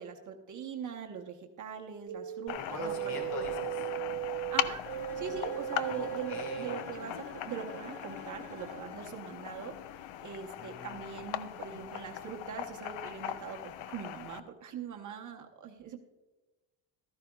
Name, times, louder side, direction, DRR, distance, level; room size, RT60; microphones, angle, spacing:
voice 1, 0.0-3.2 4.4-4.8 5.1-9.7 10.2-16.0, right 7 dB, 40° right, 2 dB, 1.0 m, -42 dB
sound 1, 2.1-6.8, right 11 dB, 75° right, 0.7 m, -37 dB
sound 2, 2.5-14.4, left 11 dB, 70° left, 0.6 m, -40 dB
voice 2, 2.6-3.9 5.9-6.8 10.6-10.9, left 3 dB, 55° left, 3 dB, 2.2 m, -42 dB
Bowed string instrument, 4.8-9.1, equal, 40° left, 1.8 m, -49 dB
14.5 x 13.0 x 2.3 m, 1.1 s
cardioid pair, 150°, 46 cm